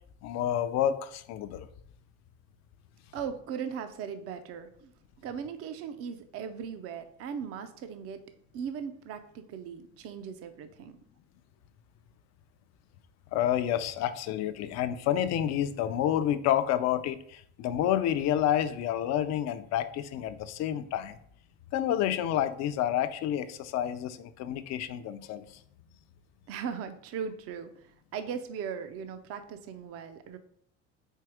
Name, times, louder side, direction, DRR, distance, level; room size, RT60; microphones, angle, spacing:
voice 1, 0.2-1.7 13.3-21.2 21.7-25.4, left 11 dB, 55° left, 11 dB, 0.5 m, -29 dB
voice 2, 3.1-4.9 5.2-8.2 8.5-10.9 26.5-30.4, right 7 dB, 50° right, 9 dB, 0.5 m, -38 dB
4.6 x 4.2 x 4.8 m, 0.66 s
cardioid pair, 145°, 31 cm